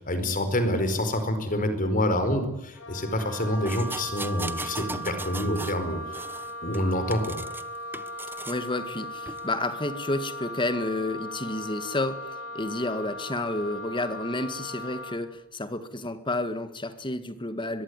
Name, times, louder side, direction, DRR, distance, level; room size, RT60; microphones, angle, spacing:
voice 1, 0.0-6.0 6.6-7.4, left 1 dB, 40° left, 9 dB, 4.8 m, -27 dB
Wind instrument woodwind instrument, 2.7-15.2, equal, 65° left, 5.0 m, -38 dB
sound 1, 3.7-5.8 6.1-7.6 7.9-8.6 9.3-9.4, right 2 dB, 10° right, 1.2 m, -38 dB
voice 2, 8.5-17.8, left 2 dB, 20° left, 11 dB, 1.9 m, -30 dB
23.0 x 22.0 x 9.8 m, 0.92 s
head